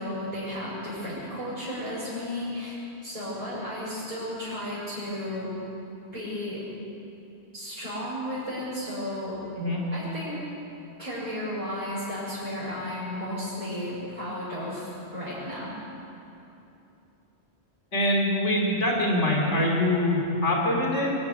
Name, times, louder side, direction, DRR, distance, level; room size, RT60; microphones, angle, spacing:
voice 1, 0.0-2.8 3.0-5.5 6.1-6.6 7.5-9.4 9.9-10.4 11.0-15.7, left 1 dB, 30° right, -10 dB, 5.8 m, -33 dB
voice 2, 17.9-21.2, left 1 dB, 85° left, -1 dB, 3.5 m, -24 dB
22.5 x 12.0 x 9.7 m, 2.9 s
omnidirectional pair, 1.2 m